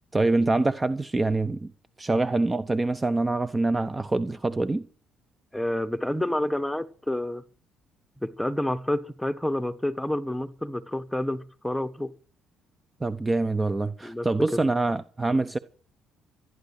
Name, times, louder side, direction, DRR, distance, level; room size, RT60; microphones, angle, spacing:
voice 1, 0.1-1.7 2.0-4.8 13.0-15.6, right 2 dB, 20° right, 0.8 m, -25 dB
voice 2, 5.5-7.4 8.2-12.1 14.0-14.3, left 1 dB, 5° left, 1.3 m, -29 dB
14.0 x 10.5 x 6.6 m
cardioid pair, 95°, 0 cm